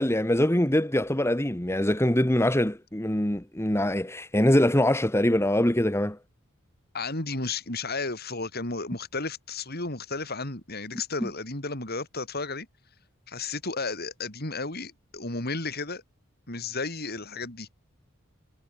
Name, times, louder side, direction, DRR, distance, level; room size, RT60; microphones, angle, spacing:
voice 1, 0.0-6.2, left 1 dB, 15° left, 1.7 m, -23 dB
voice 2, 6.9-12.7 13.3-16.0 16.5-17.7, left 3 dB, 50° left, 4.8 m, -33 dB
head